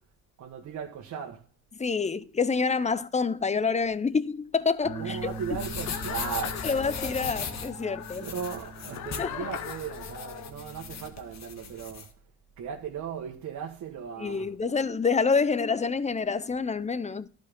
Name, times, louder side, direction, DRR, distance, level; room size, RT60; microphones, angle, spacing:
voice 1, 0.4-1.5 5.0-6.7 8.2-12.1 12.6-14.5, right 7 dB, 70° right, 1.6 m, -37 dB
voice 2, 1.8-5.3 6.6-8.3 9.2-9.3 14.2-17.3, left 5 dB, 25° left, 0.7 m, -27 dB
sound 1, 4.8-10.5, left 11 dB, 90° left, 0.9 m, -41 dB
Bass guitar, 4.8-11.1, right 5 dB, 30° right, 2.2 m, -43 dB
sound 2, 5.0-12.1, left 6 dB, 60° left, 1.6 m, -39 dB
11.5 x 5.3 x 5.3 m
cardioid pair, 90°, 30 cm